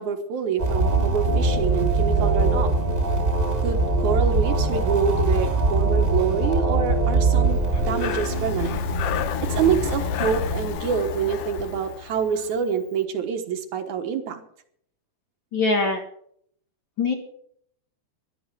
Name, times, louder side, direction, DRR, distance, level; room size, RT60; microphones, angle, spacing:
voice 1, 0.0-2.7 3.6-8.8 9.4-14.4, right 7 dB, 75° right, 6 dB, 2.7 m, -26 dB
sound 1, 0.6-10.7, right 3 dB, 20° right, 1.7 m, -22 dB
Breathing, 7.6-12.6, left 9 dB, 70° left, 1.5 m, -31 dB
voice 2, 15.5-16.0 17.0-17.1, left 3 dB, 45° left, 3 dB, 2.0 m, -22 dB
13.0 x 11.5 x 6.2 m, 0.66 s
omnidirectional pair, 3.6 m